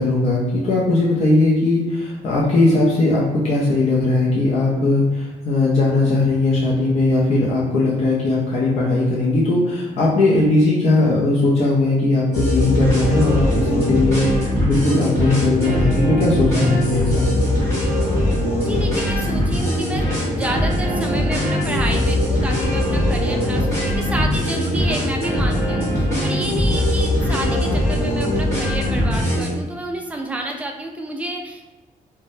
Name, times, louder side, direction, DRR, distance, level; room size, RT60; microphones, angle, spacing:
voice 1, 0.0-17.3, left 2 dB, 45° left, -6 dB, 0.6 m, -18 dB
sound 1, 12.3-29.5, left 1 dB, 20° left, 1.5 m, -21 dB
voice 2, 18.6-31.6, right 1 dB, 10° right, 1 dB, 0.3 m, -29 dB
3.3 x 2.1 x 2.6 m, 1.1 s
cardioid pair, 140°, 15 cm